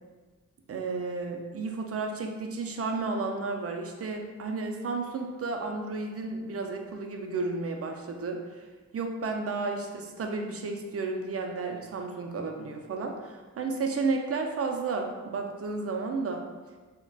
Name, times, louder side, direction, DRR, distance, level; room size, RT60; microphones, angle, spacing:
voice 1, 0.7-8.4 8.9-16.4, right 3 dB, 50° right, 3 dB, 0.4 m, -32 dB
3.8 x 2.2 x 2.2 m, 1.3 s
wide cardioid pair, 75°, 31 cm